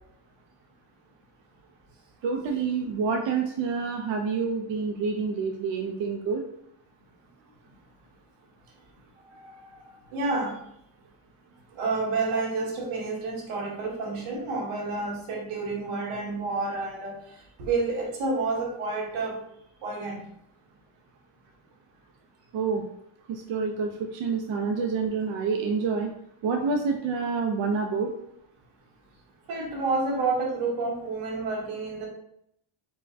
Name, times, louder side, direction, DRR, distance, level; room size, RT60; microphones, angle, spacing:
voice 1, 2.2-6.4 22.5-22.8 23.3-26.1 26.4-28.1, right 5 dB, 60° right, 2 dB, 0.5 m, -28 dB
voice 2, 9.3-10.6 11.7-19.4 19.8-20.2 29.5-32.1, right 3 dB, 85° right, -1 dB, 1.2 m, -30 dB
4.6 x 2.1 x 2.6 m, 0.73 s
cardioid pair, 115°, 50 cm